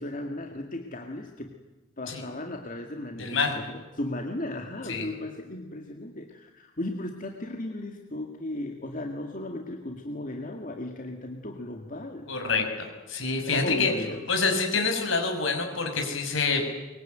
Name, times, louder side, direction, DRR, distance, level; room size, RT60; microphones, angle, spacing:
voice 1, 0.0-1.5 2.0-12.3 13.5-14.3, left 1 dB, 40° left, 3 dB, 2.1 m, -36 dB
voice 2, 3.2-3.5 4.9-5.1 12.3-13.9 14.3-16.7, left 4 dB, 70° left, 5 dB, 6.1 m, -27 dB
23.5 x 22.5 x 9.2 m, 1.2 s
head